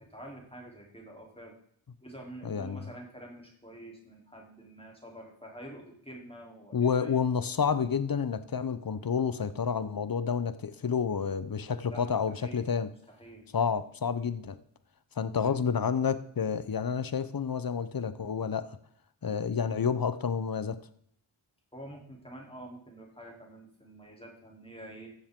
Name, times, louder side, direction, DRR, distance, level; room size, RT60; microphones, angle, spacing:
voice 1, 0.1-1.5 2.0-7.1 11.9-12.6 13.1-13.5 15.4-15.5 21.7-25.1, right 1 dB, 10° left, -1 dB, 3.5 m, -47 dB
voice 2, 2.4-2.9 6.7-12.9 13.5-14.6 15.2-18.8 19.2-20.8, left 6 dB, 45° left, 13 dB, 0.9 m, -29 dB
14.0 x 7.2 x 3.8 m, 0.68 s
cardioid pair, 45°, 49 cm